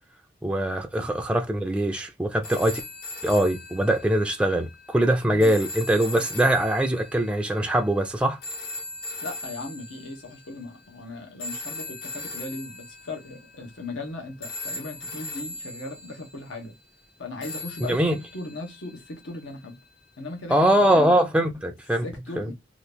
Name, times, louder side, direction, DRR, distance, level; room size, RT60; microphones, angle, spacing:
voice 1, 0.4-2.8 3.2-8.4 17.8-18.2 20.5-22.1 22.4-22.5, right 1 dB, 5° right, 0.3 m, -22 dB
sound 1, 2.4-10.6 11.4-14.1 14.4-16.5 17.4-19.6 20.8-20.9, left 2 dB, 55° left, 0.8 m, -39 dB
voice 2, 9.2-16.7 17.2-19.8 20.2-21.1 22.0-22.5, left 2 dB, 80° left, 1.0 m, -37 dB
2.8 x 2.5 x 3.4 m
head